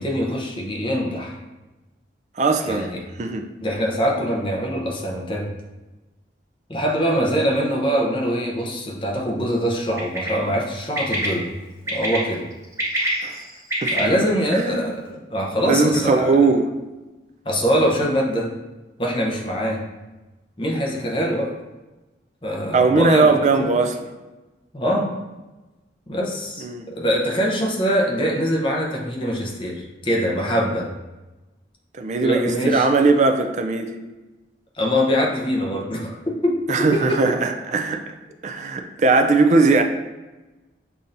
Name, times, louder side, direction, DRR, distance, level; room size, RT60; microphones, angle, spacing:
voice 1, 0.0-1.4 2.6-3.0 3.6-5.4 6.7-11.5 11.9-12.5 13.9-16.4 17.4-18.5 19.0-19.8 20.6-21.5 22.4-23.7 24.7-25.1 26.1-30.9 32.2-32.9 34.7-36.2 36.4-36.5 36.9-37.3, equal, 30° left, -1 dB, 0.7 m, -23 dB
voice 2, 2.4-2.9 3.2-3.4 13.2-13.4 13.8-14.0 15.7-16.7 22.7-24.0 26.6-26.9 32.0-34.0 36.7-38.1 38.4-39.8, right 3 dB, 40° right, 6 dB, 0.3 m, -19 dB
Bird, 10.0-10.3 11.0-11.3 11.9-12.2 12.6-14.0, right 1 dB, 15° right, 0.9 m, -24 dB
6.8 x 2.7 x 2.6 m, 1.1 s
head